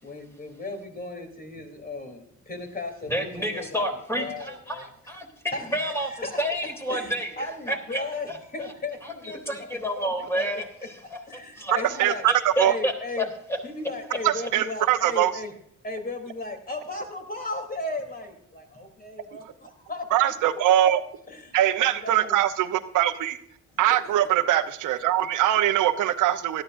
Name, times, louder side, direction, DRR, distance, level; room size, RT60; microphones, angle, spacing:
voice 1, 0.0-3.8 4.2-4.9 5.5-6.4 6.9-10.5 11.3-12.3 12.6-13.3 13.6-15.5 15.8-20.1 21.3-22.4 23.8-24.1, left 2 dB, 30° left, 4 dB, 3.3 m, -36 dB
voice 2, 3.1-8.7 9.0-11.2 11.6-13.2, equal, 10° left, 2 dB, 3.4 m, -30 dB
voice 3, 12.0-12.7 14.2-15.3 19.3-19.4 20.1-21.0 21.5-23.4 23.8-26.6, right 12 dB, 85° right, 10 dB, 0.9 m, -22 dB
17.5 x 12.5 x 2.6 m, 0.70 s
cardioid pair, 90°, 30 cm